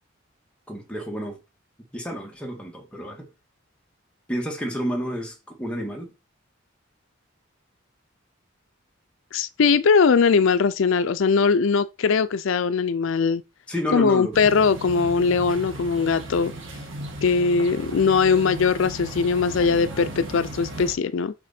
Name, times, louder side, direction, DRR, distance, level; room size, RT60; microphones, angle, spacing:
voice 1, 0.7-1.4 1.9-3.3 4.3-6.1 13.7-14.7, equal, 5° left, 1.8 m, -30 dB
voice 2, 9.3-13.4 13.9-16.5 17.2-21.3, left 5 dB, 70° left, 0.4 m, -20 dB
sound 1, 14.3-20.9, right 1 dB, 65° right, 1.8 m, -36 dB
6.1 x 5.7 x 4.3 m
head